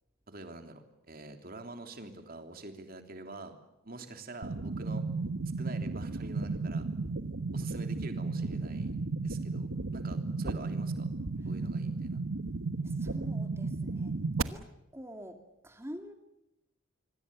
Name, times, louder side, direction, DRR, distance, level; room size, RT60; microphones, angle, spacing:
voice 1, 0.3-3.6 3.8-5.0 5.6-6.9 7.5-8.9 9.2-11.1 11.4-12.2, right 2 dB, 45° right, 6 dB, 3.3 m, -46 dB
sound 1, 4.4-14.4, right 3 dB, 85° right, 1.3 m, -34 dB
voice 2, 12.8-14.2 14.5-14.7 14.9-16.1, equal, 15° right, 6 dB, 2.2 m, -46 dB
25.5 x 25.0 x 6.9 m, 0.92 s
head